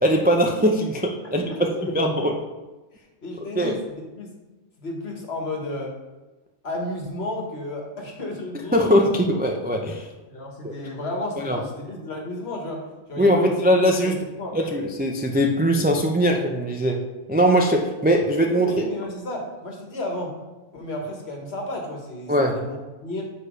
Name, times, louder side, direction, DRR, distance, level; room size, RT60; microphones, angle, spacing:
voice 1, 0.0-1.4 1.9-2.3 3.6-3.8 8.7-10.1 10.6-10.7 11.4-11.6 13.2-14.2 14.5-17.0 17.3-18.7 22.3-22.7, equal, 15° right, 1 dB, 0.3 m, -21 dB
voice 2, 1.2-2.3 3.2-4.3 4.8-5.9 6.6-8.9 10.3-12.8 13.1-13.5 14.0-14.6 18.6-20.3 20.7-23.2, left 1 dB, 60° left, 0 dB, 1.6 m, -32 dB
6.7 x 4.9 x 5.0 m, 1.2 s
omnidirectional pair, 1.2 m